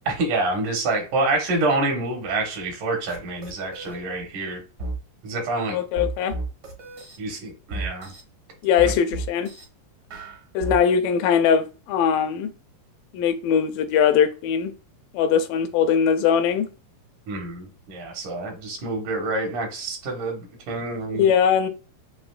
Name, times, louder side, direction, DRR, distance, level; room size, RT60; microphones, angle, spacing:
voice 1, 0.1-4.6 5.2-5.8 7.2-8.1 8.8-9.0 17.3-21.3, right 2 dB, 70° right, 2.7 m, -27 dB
sound 1, 3.1-3.2 3.4-4.0 4.8-5.0 6.0-7.2 7.7-8.2 8.8-9.6 10.1-10.8, right 2 dB, 55° right, 1.1 m, -32 dB
voice 2, 5.7-6.3 8.6-9.5 10.5-12.5 13.1-14.7 15.1-16.7 21.1-21.7, left 7 dB, 85° left, 2.3 m, -21 dB
8.0 x 2.7 x 2.3 m
omnidirectional pair, 3.9 m